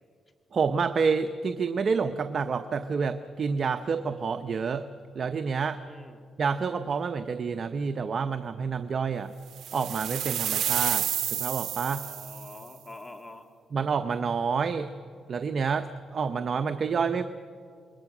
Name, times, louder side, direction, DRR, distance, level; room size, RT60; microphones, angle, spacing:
voice 1, 0.5-4.8 5.1-5.8 6.4-9.3 9.7-12.0 13.7-14.9 15.3-17.2, right 5 dB, 50° right, 8 dB, 0.8 m, -28 dB
voice 2, 5.8-6.3 11.9-13.5, left 2 dB, 25° left, 5 dB, 2.4 m, -46 dB
sound 1, 9.6-12.6, right 10 dB, 80° right, 0.7 m, -30 dB
27.5 x 21.5 x 6.1 m, 2.2 s
cardioid pair, 100°, 0 cm